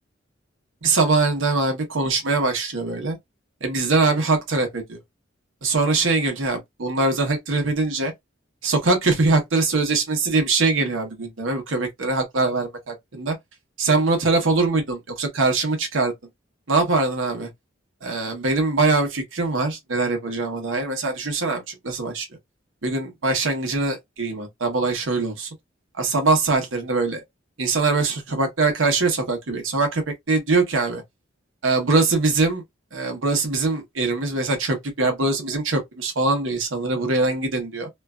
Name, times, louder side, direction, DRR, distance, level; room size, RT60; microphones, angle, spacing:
voice 1, 0.8-3.2 3.6-5.0 5.6-8.1 8.6-13.4 13.8-16.1 16.7-17.5 18.0-22.3 22.8-25.5 26.0-27.2 27.6-31.0 31.6-32.6 32.9-37.9, right 3 dB, 75° right, 0.9 m, -22 dB
3.0 x 2.3 x 2.3 m
head